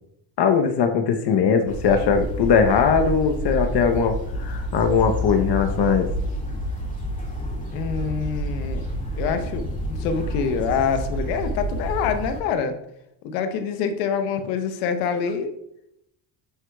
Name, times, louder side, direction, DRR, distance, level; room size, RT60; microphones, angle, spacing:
voice 1, 0.4-6.1, left 6 dB, 55° left, 5 dB, 0.9 m, -20 dB
sound 1, 1.7-12.4, equal, 15° left, 2.0 m, -29 dB
voice 2, 7.7-8.8 9.1-12.8 13.2-15.5, left 6 dB, 90° left, 8 dB, 0.9 m, -26 dB
10.0 x 4.5 x 2.3 m, 0.76 s
supercardioid pair, 75°, 48 cm